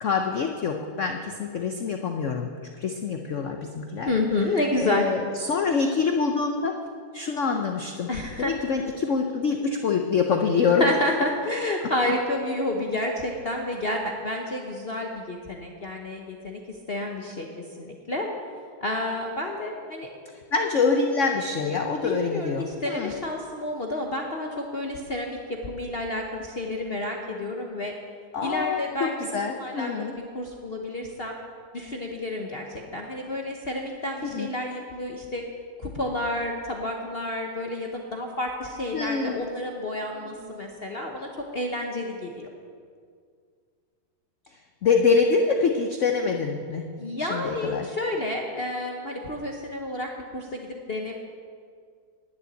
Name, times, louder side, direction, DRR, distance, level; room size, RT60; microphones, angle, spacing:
voice 1, 0.0-2.5 2.8-4.1 4.8-6.7 7.1-8.1 8.4-10.9 20.5-23.1 28.3-30.1 34.2-34.5 38.9-39.4 40.4-40.9 44.8-46.9 47.2-47.9, left 5 dB, 85° left, 4 dB, 0.6 m, -25 dB
voice 2, 4.1-5.1 8.1-8.5 10.8-16.6 16.9-17.5 17.8-18.3 18.8-20.1 22.0-27.9 28.4-31.4 31.7-35.4 35.8-42.5 47.0-51.1, left 1 dB, 45° left, 1 dB, 0.7 m, -30 dB
11.0 x 7.0 x 9.4 m, 2.1 s
omnidirectional pair, 2.3 m